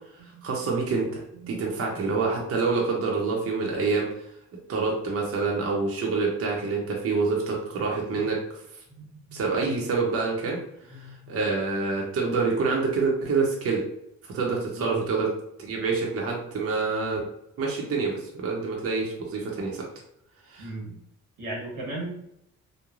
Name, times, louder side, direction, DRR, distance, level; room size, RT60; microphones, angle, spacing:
voice 1, 0.2-4.3 4.7-8.6 9.3-13.8 14.2-15.3 15.6-17.2 17.6-19.8 20.5-20.7, right 4 dB, 50° right, -2 dB, 0.7 m, -27 dB
voice 2, 9.0-9.5 10.9-11.4 14.7-15.0 20.6-21.0 21.4-22.1, right 1 dB, 90° right, -3 dB, 1.2 m, -37 dB
3.1 x 2.2 x 2.4 m, 0.77 s
cardioid pair, 90°, 30 cm